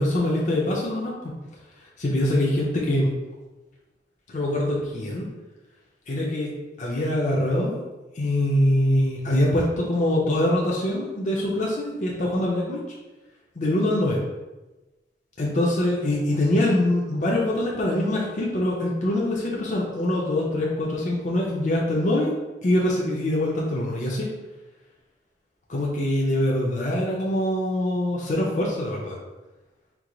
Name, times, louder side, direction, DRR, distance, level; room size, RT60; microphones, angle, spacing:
voice 1, 0.0-1.3 1.8-3.1 4.3-5.3 6.1-6.5 6.8-7.8 8.1-12.8 13.6-14.2 15.4-22.3 22.6-24.3 25.7-29.2, left 1 dB, 45° left, -3 dB, 0.6 m, -24 dB
4.6 x 2.0 x 3.8 m, 1.1 s
head